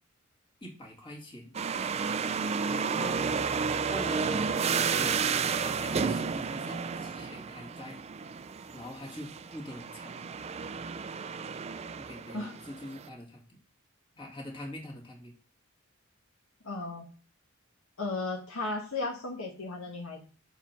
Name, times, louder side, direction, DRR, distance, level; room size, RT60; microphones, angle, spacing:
voice 1, 0.6-1.6 2.7-3.3 3.9-8.0 8.7-10.2 12.0-13.5 14.2-15.3, equal, 25° left, -1 dB, 1.9 m, -43 dB
sound 1, 1.5-13.1, right 6 dB, 30° right, 0.3 m, -32 dB
voice 2, 16.6-17.0 18.0-20.2, left 3 dB, 70° left, 2 dB, 1.3 m, -35 dB
5.6 x 4.6 x 5.9 m, 0.38 s
head